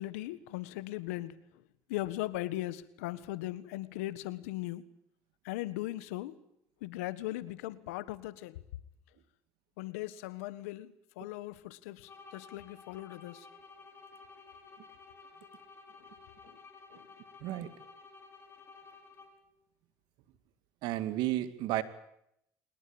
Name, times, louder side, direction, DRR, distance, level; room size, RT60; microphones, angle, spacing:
voice 1, 0.0-1.6 1.9-4.8 5.4-6.4 6.8-8.6 9.8-13.5 16.4-16.6 16.9-17.1, left 16 dB, 90° left, 1.5 m, -39 dB
sound 1, 12.0-19.6, left 4 dB, 35° left, 5.5 m, -54 dB
voice 2, 17.4-17.7 20.8-21.8, right 15 dB, 75° right, 2.2 m, -32 dB
23.0 x 20.5 x 8.8 m
supercardioid pair, 85°, 8 cm